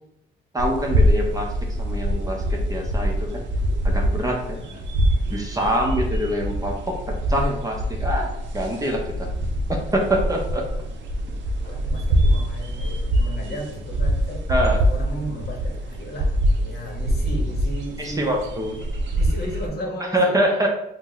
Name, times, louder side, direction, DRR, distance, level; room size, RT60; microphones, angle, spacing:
voice 1, 0.5-1.5 1.8-3.4 3.8-4.6 5.3-9.3 9.7-10.6 14.5-14.8 18.0-18.9 20.1-20.7, right 1 dB, 15° right, 0 dB, 0.6 m, -25 dB
sound 1, 0.6-19.7, equal, 70° right, 0.4 m, -24 dB
voice 2, 9.1-9.5 11.6-14.4 14.7-16.3 16.6-18.4 19.1-20.5, equal, 55° left, 0 dB, 0.8 m, -35 dB
2.7 x 2.0 x 3.8 m, 0.80 s
cardioid pair, 90°, 20 cm